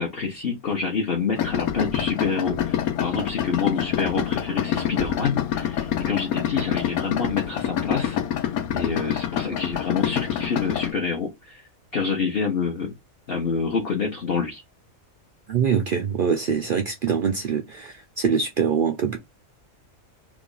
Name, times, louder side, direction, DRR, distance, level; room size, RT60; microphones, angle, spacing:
voice 1, 0.0-8.2 8.7-11.6 11.9-12.9 13.3-14.6, left 5 dB, 50° left, 1.0 m, -27 dB
Idling, 1.4-10.9, left 10 dB, 85° left, 1.1 m, -26 dB
voice 2, 15.5-19.2, right 6 dB, 70° right, 0.5 m, -24 dB
3.0 x 2.4 x 3.8 m
omnidirectional pair, 1.5 m